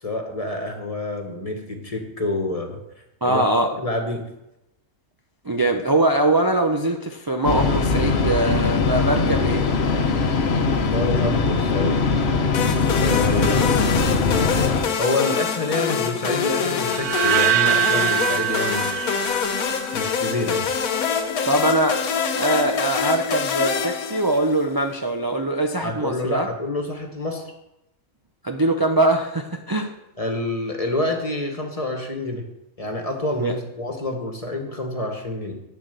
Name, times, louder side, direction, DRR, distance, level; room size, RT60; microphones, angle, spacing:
voice 1, 0.0-2.8 3.2-3.4 3.7-4.3 10.9-12.3 12.9-13.9 15.0-19.2 19.9-20.7 25.8-27.4 30.2-32.5 32.8-35.6, left 2 dB, 25° left, 4 dB, 1.5 m, -27 dB
voice 2, 3.2-3.7 5.4-9.7 21.5-22.0 22.3-26.5 28.4-29.9 33.4-33.5, right 2 dB, 35° right, 3 dB, 0.3 m, -22 dB
sound 1, 7.4-14.9, left 4 dB, 50° left, 1.1 m, -21 dB
sound 2, 12.5-24.7, left 6 dB, 75° left, 1.3 m, -25 dB
sound 3, 16.8-20.0, right 12 dB, 80° right, 1.2 m, -23 dB
9.0 x 7.6 x 6.8 m, 0.89 s
omnidirectional pair, 1.6 m